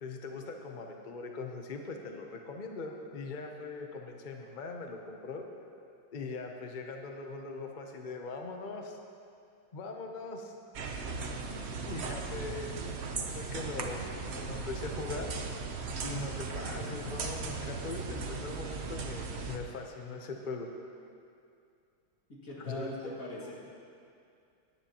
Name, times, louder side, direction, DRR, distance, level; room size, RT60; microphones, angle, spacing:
voice 1, 0.0-5.5 6.1-9.0 9.7-10.5 11.6-12.8 13.3-14.0 14.4-15.3 16.0-20.7 22.6-23.1 23.4-23.5, left 3 dB, 70° left, 3 dB, 0.4 m, -41 dB
sound 1, 10.7-19.6, right 4 dB, 65° right, 0.6 m, -37 dB
voice 2, 22.3-23.5, left 1 dB, 45° left, -5 dB, 2.6 m, -41 dB
18.5 x 10.0 x 3.0 m, 2.4 s
omnidirectional pair, 2.1 m